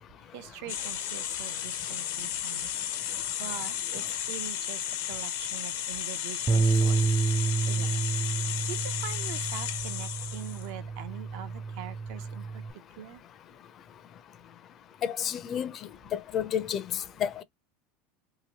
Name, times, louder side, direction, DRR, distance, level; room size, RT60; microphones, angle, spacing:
voice 1, 0.2-7.2 7.6-8.0 8.7-12.6 13.0-13.2, right 10 dB, 70° right, 0.6 m, -43 dB
sound 1, 0.7-10.7, left 11 dB, 85° left, 0.8 m, -34 dB
Bass guitar, 6.5-12.7, right 4 dB, 20° right, 0.4 m, -29 dB
voice 2, 15.0-15.7 16.1-17.4, left 9 dB, 40° left, 0.5 m, -30 dB
2.9 x 2.5 x 2.8 m
supercardioid pair, 130°, 0 cm